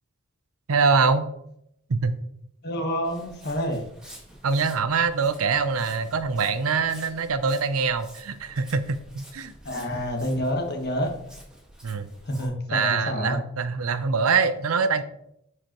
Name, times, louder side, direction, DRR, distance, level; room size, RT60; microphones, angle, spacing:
voice 1, 0.7-1.3 1.9-2.2 4.4-9.5 11.8-12.1 12.7-15.0, right 5 dB, 85° right, 11 dB, 0.6 m, -24 dB
voice 2, 2.6-3.8 9.6-11.1 12.3-13.4, equal, 50° left, 3 dB, 1.3 m, -28 dB
Walk footsteps, 3.0-12.5, equal, 5° right, 1.7 m, -49 dB
9.7 x 4.9 x 3.0 m, 0.77 s
head